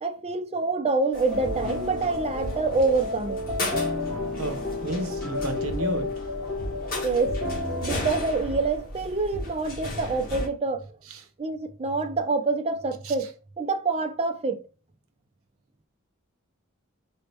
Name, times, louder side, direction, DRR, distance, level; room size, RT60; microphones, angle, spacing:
voice 1, 0.0-3.5 7.0-7.4 7.8-10.9 11.4-14.6, right 3 dB, 30° right, 0.5 m, -26 dB
sound 1, 1.1-10.5, left 1 dB, 45° left, 1.6 m, -35 dB
sound 2, 1.3-8.1, left 2 dB, ahead, 1.7 m, -31 dB
voice 2, 4.3-6.1 11.1-11.2 13.0-13.1, right 2 dB, 75° right, 0.8 m, -32 dB
4.3 x 2.7 x 3.3 m
head